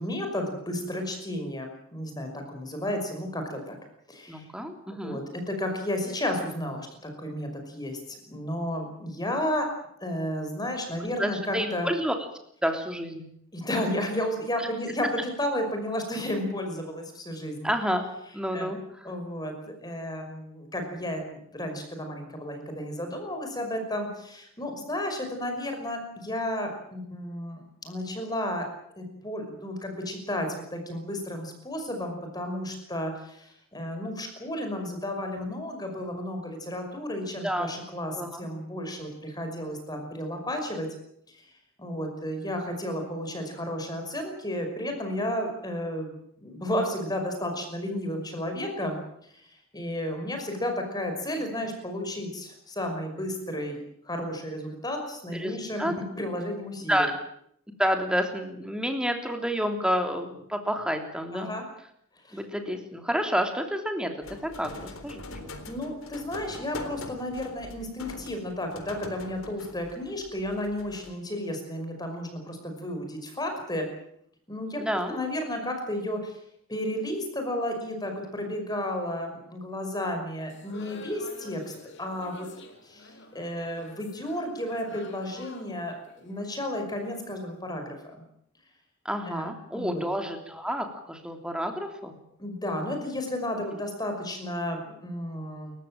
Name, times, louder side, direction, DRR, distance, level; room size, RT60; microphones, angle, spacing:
voice 1, 0.0-3.8 4.1-4.5 5.0-9.7 10.0-11.9 13.5-17.7 18.5-18.7 19.1-19.5 19.8-28.7 29.0-40.9 41.3-41.4 41.8-49.0 49.3-49.4 49.7-55.9 56.2-57.1 61.3-61.6 62.2-62.4 65.7-73.9 74.5-74.8 75.1-76.4 76.7-81.6 82.0-82.5 82.8-88.2 89.3-90.0 92.4-95.7, left 1 dB, 20° left, 5 dB, 5.5 m, -32 dB
voice 2, 4.3-5.2 11.0-12.1 12.6-13.2 14.6-14.7 17.6-18.0 18.3-19.1 37.4-37.8 38.2-38.5 51.4-51.5 55.3-55.9 56.9-57.1 57.8-61.5 62.3-64.1 64.4-65.5 74.8-75.2 89.0-92.1, equal, 5° right, 5 dB, 3.2 m, -29 dB
sound 1, 64.2-71.1, left 2 dB, 70° left, 4.0 m, -43 dB
sound 2, 80.5-87.4, left 2 dB, 55° left, 3.8 m, -49 dB
29.0 x 15.0 x 9.0 m, 0.71 s
head